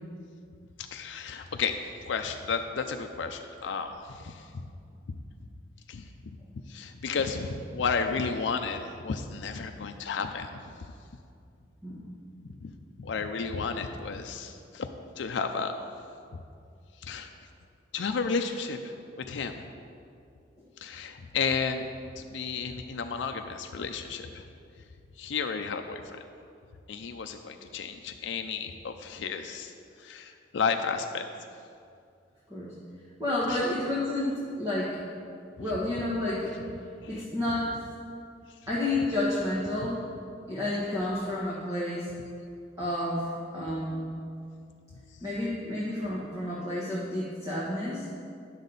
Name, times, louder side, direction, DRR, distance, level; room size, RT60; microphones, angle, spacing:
voice 1, 0.8-4.7 5.9-6.4 6.7-10.6 12.4-14.9 15.2-15.8 17.0-17.3 17.9-19.6 20.8-21.9 22.1-24.4 25.2-26.0 26.9-29.7 30.0-31.3 33.5-33.7 37.0-37.1, left 5 dB, 80° left, 5 dB, 0.5 m, -32 dB
voice 2, 33.2-35.0 35.6-36.6 37.1-37.7 38.7-40.0 40.5-42.1 42.8-43.3 43.5-44.1 45.2-48.1, left 1 dB, 20° right, -8 dB, 1.4 m, -30 dB
11.0 x 6.3 x 4.0 m, 2.4 s
head